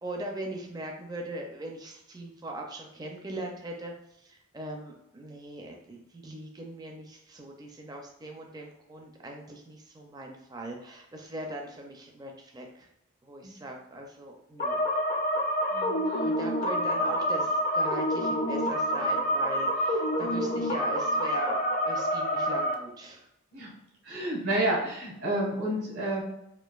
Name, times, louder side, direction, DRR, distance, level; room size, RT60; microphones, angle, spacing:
voice 1, 0.0-3.9 4.2-12.9 13.2-14.9 16.2-23.3, right 1 dB, 20° right, 1 dB, 0.4 m, -40 dB
sound 1, 14.6-22.7, equal, 40° left, 0.4 m, -27 dB
voice 2, 24.0-26.2, right 1 dB, 80° right, -4 dB, 1.3 m, -29 dB
4.5 x 2.4 x 2.3 m, 0.81 s
head